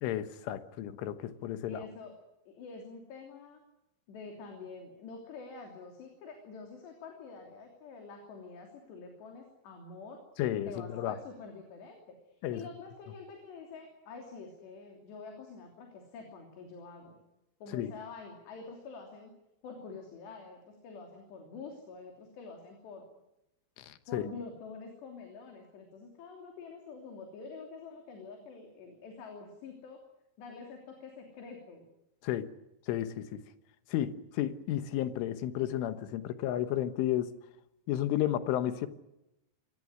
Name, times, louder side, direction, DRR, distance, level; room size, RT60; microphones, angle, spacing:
voice 1, 0.0-1.8 10.4-11.2 12.4-12.7 17.7-17.9 23.8-24.3 32.2-32.5 32.9-33.4 33.9-37.3 37.9-38.9, left 12 dB, 85° left, 11 dB, 3.8 m, -32 dB
voice 2, 1.6-2.1 2.5-3.6 4.1-10.2 10.7-12.2 12.5-17.2 17.6-19.3 19.6-23.1 24.1-30.0 30.4-31.9, left 4 dB, 65° left, 2 dB, 5.1 m, -47 dB
25.5 x 18.5 x 9.6 m, 0.89 s
omnidirectional pair, 5.5 m